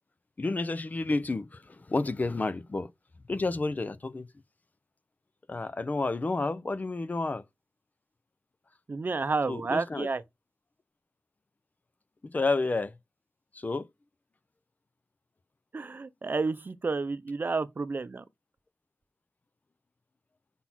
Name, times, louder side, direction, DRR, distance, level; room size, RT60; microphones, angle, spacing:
voice 1, 0.4-2.9 3.3-4.3 5.5-7.4 9.5-10.1 12.2-12.9 13.5-13.9, left 3 dB, 45° left, 0.7 m, -30 dB
voice 2, 8.9-10.2 15.7-18.2, right 4 dB, 55° right, 0.6 m, -30 dB
5.5 x 4.1 x 5.9 m
wide cardioid pair, 85°, 4 cm